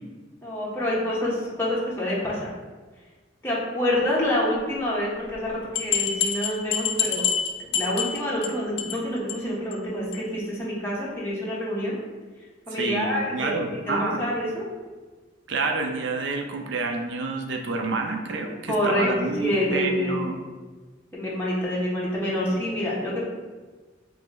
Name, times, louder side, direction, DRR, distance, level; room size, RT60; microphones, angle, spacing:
voice 1, 0.4-2.5 3.4-7.3 7.7-12.0 12.7-14.7 18.7-20.2 21.1-23.3, left 1 dB, 15° left, -6 dB, 0.9 m, -27 dB
sound 1, 5.3-5.4 5.8-8.5 8.8-9.0 9.3-9.4 9.7-9.8 10.1-10.2, left 7 dB, 65° left, 0.5 m, -26 dB
voice 2, 12.8-14.2 15.5-20.4, right 3 dB, 65° right, 4 dB, 0.4 m, -28 dB
3.0 x 3.0 x 3.7 m, 1.3 s
head